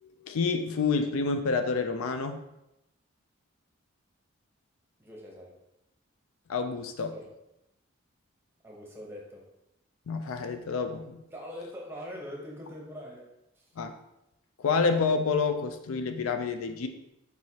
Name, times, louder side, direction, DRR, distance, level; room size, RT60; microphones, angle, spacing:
voice 1, 0.0-2.4 6.5-7.1 10.1-11.2 13.8-13.9 14.6-16.9, left 4 dB, 75° left, 7 dB, 0.4 m, -28 dB
voice 2, 5.0-5.5 7.1-7.3 8.6-9.5 11.3-13.3 13.6-13.7, equal, 10° right, -2 dB, 0.8 m, -43 dB
4.7 x 4.1 x 2.8 m, 0.88 s
head